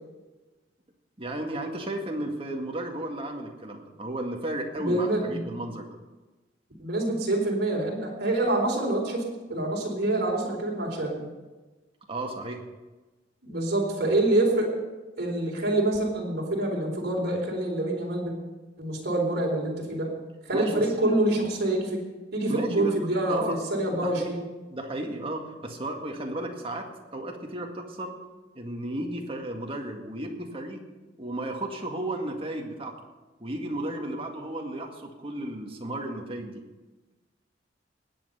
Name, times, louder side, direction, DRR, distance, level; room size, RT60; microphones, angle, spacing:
voice 1, 1.2-6.0 12.1-12.7 20.5-21.1 22.5-22.9 23.3-23.6 23.9-24.3 24.7-28.2 28.6-30.8 31.2-32.9 33.4-36.6, right 1 dB, 30° right, 2 dB, 1.9 m, -34 dB
voice 2, 4.8-5.4 6.8-9.2 9.5-11.2 13.4-14.7 15.2-18.3 18.8-20.1 20.5-22.0 22.3-24.4, right 1 dB, 55° right, -2 dB, 4.3 m, -26 dB
19.5 x 8.8 x 5.6 m, 1.2 s
head